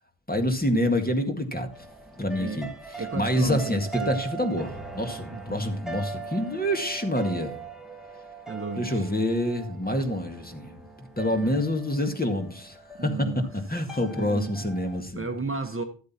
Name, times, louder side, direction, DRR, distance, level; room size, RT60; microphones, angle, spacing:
voice 1, 0.3-1.7 2.2-2.7 3.1-7.6 8.8-13.1 13.7-15.3, left 1 dB, 20° left, 1.9 m, -27 dB
sound 1, 1.7-15.0, right 4 dB, ahead, 1.6 m, -41 dB
voice 2, 3.0-4.1 5.3-5.6 8.5-9.1 11.3-11.5 12.9-13.5 14.1-14.5 15.1-15.8, right 3 dB, 30° right, 1.3 m, -34 dB
12.0 x 8.3 x 4.4 m
wide cardioid pair, 55°, 43 cm